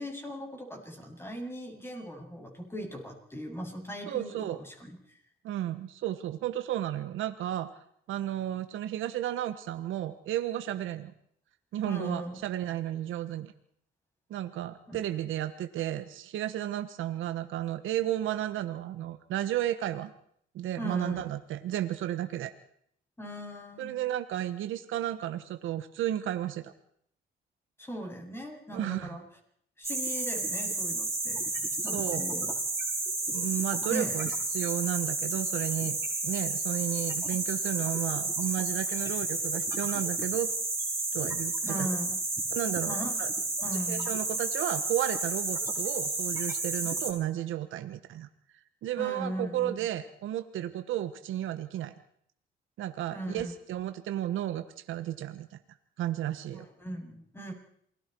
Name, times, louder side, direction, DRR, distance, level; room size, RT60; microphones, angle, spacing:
voice 1, 0.0-4.9 11.9-12.4 14.9-15.0 20.8-21.3 23.2-24.0 27.8-29.2 29.8-31.4 31.8-32.5 33.9-34.2 41.6-42.2 42.9-43.2 43.6-44.1 49.0-49.8 53.1-53.5 56.5-57.5, right 1 dB, 10° left, 2 dB, 7.7 m, -38 dB
voice 2, 4.1-4.6 5.4-7.7 8.1-11.1 11.7-13.5 14.3-20.1 20.5-22.5 23.8-26.7 28.7-29.2 31.8-32.2 33.3-36.0 36.2-40.5 41.1-41.9 42.5-43.3 43.7-48.3 48.8-51.9 52.8-55.6 56.0-56.7, right 12 dB, 85° right, 9 dB, 1.3 m, -33 dB
sound 1, 29.8-47.1, right 3 dB, 15° right, 5.3 m, -31 dB
28.0 x 20.5 x 4.7 m, 0.66 s
cardioid pair, 90°, 20 cm